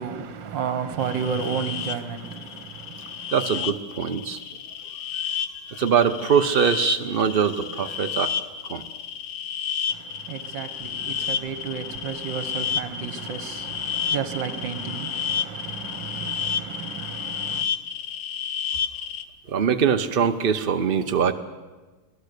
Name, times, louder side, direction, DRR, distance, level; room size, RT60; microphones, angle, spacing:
voice 1, 0.0-3.4 9.9-17.7, right 7 dB, 65° right, 1.9 m, -32 dB
sound 1, 1.0-19.2, left 8 dB, 90° left, 1.8 m, -31 dB
voice 2, 3.3-4.4 5.7-8.3 8.7-8.8 19.5-21.3, right 7 dB, 80° right, 0.5 m, -22 dB
24.0 x 17.5 x 6.7 m
omnidirectional pair, 2.3 m